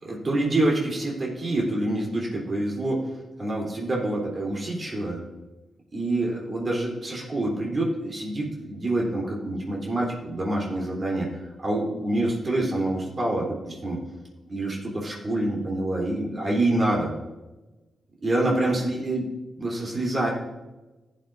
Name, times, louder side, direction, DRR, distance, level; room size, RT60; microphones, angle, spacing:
voice 1, 0.0-3.1 3.4-5.2 5.9-14.0 14.5-17.1 18.2-19.2 19.6-20.3, right 1 dB, 45° right, -2 dB, 3.4 m, -26 dB
15.0 x 8.3 x 2.6 m, 1.1 s
supercardioid pair, 50°, 0 cm